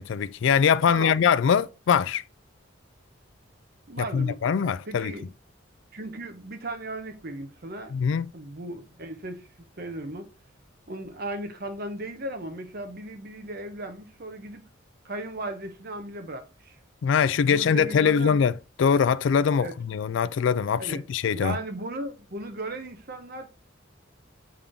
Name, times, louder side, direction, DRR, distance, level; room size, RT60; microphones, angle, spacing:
voice 1, 0.0-2.2 4.0-5.1 7.9-8.3 17.0-18.5 18.8-21.6, left 7 dB, 65° left, 0.3 m, -23 dB
voice 2, 3.9-5.3 5.9-8.0 8.3-9.5 9.8-10.3 10.9-14.6 15.0-16.8 17.5-18.4 19.6-19.8 20.8-21.0 21.3-23.5, right 1 dB, 50° right, 1.0 m, -36 dB
8.3 x 3.6 x 3.6 m
head